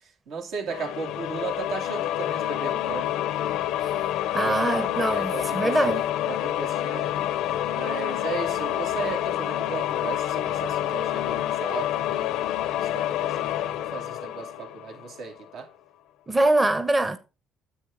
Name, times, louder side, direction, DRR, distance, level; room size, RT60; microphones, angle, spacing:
voice 1, 0.3-3.1 4.4-5.8 6.3-7.1 7.7-15.7, right 5 dB, 75° right, 2.6 m, -36 dB
sound 1, 0.7-15.3, left 12 dB, 80° left, 0.6 m, -28 dB
voice 2, 4.3-6.0 16.3-17.2, right 2 dB, 15° right, 0.8 m, -23 dB
9.8 x 7.6 x 3.8 m
cardioid pair, 100°, 0 cm